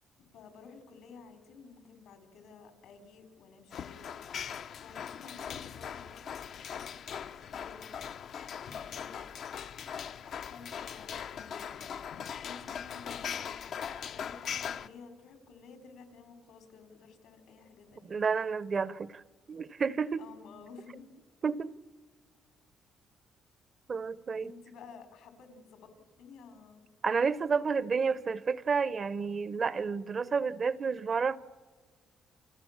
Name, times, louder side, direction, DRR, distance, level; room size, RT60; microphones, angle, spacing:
voice 1, 0.2-4.1 4.8-8.1 8.6-9.2 10.5-12.0 12.4-13.6 14.1-18.2 20.2-21.1 24.4-25.9 26.2-26.8, left 5 dB, 85° left, 4.0 m, -53 dB
sound 1, 3.7-14.9, left 8 dB, 65° left, 0.7 m, -40 dB
voice 2, 18.1-19.2 19.5-20.2 21.4-21.7 23.9-24.5 27.0-31.4, right 5 dB, 45° right, 0.8 m, -30 dB
29.5 x 27.5 x 7.3 m
cardioid pair, 90°, 0 cm